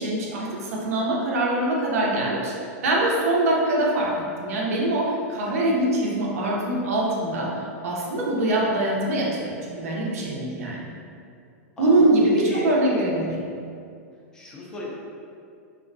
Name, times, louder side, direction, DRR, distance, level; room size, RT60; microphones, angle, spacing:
voice 1, 0.0-2.5 2.8-10.9 11.8-13.5, right 1 dB, 80° right, -3 dB, 0.5 m, -23 dB
voice 2, 12.4-12.8 14.3-14.9, left 2 dB, 10° left, -5 dB, 0.3 m, -33 dB
2.4 x 2.1 x 2.5 m, 2.4 s
supercardioid pair, 160°, 8 cm